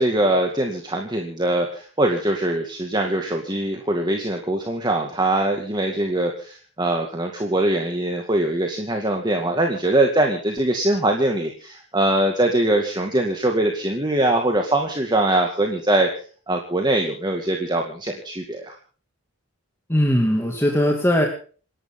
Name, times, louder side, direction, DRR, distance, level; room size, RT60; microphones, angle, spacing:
voice 1, 0.0-16.1 16.5-18.8, right 1 dB, 20° right, 2 dB, 2.1 m, -22 dB
voice 2, 19.9-21.3, equal, 10° left, 1 dB, 2.5 m, -19 dB
28.5 x 11.5 x 3.9 m, 0.41 s
head